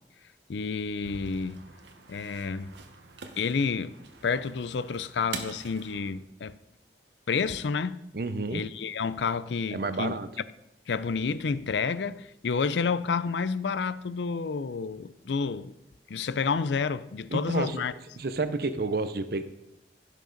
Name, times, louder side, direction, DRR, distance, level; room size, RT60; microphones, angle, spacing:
voice 1, 0.5-1.6 2.1-2.7 3.4-4.0 4.2-6.5 7.3-8.0 8.5-10.1 10.9-15.7 16.1-17.9, left 5 dB, 80° left, 0.5 m, -29 dB
sound 1, 1.0-6.1, right 4 dB, 85° right, 1.1 m, -44 dB
voice 2, 8.1-8.6 9.7-10.3 17.3-17.8 18.2-19.4, right 3 dB, 55° right, 0.7 m, -30 dB
15.5 x 6.6 x 3.9 m
head